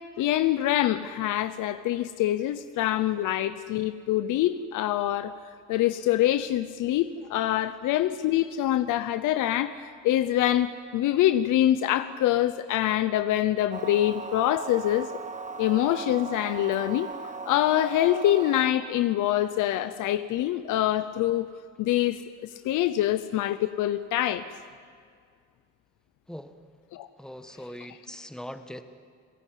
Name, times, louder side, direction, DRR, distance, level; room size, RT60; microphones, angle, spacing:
voice 1, 0.2-5.3 5.7-15.1 15.6-17.1 17.5-21.5 21.8-24.5 26.9-27.1, left 13 dB, 90° left, 12 dB, 0.8 m, -25 dB
sound 1, 13.7-18.7, right 5 dB, 25° right, 1.4 m, -38 dB
voice 2, 27.2-28.8, equal, ahead, 8 dB, 1.6 m, -41 dB
28.5 x 16.5 x 9.3 m, 2.1 s
cardioid pair, 90°, 30 cm